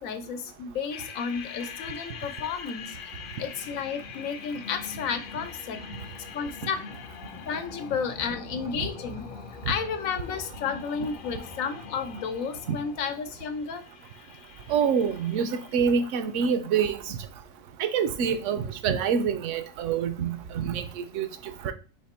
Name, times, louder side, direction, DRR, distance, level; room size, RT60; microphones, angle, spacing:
voice 1, 0.0-3.0 3.4-5.8 6.3-6.8 7.3-9.2 9.7-13.8, left 6 dB, 90° left, 1.1 m, -32 dB
sound 1, 0.9-16.2, left 6 dB, 60° left, 0.5 m, -43 dB
voice 2, 14.7-17.2 17.8-21.3 21.6-21.7, right 7 dB, 75° right, 0.9 m, -26 dB
4.1 x 2.9 x 4.1 m
omnidirectional pair, 1.4 m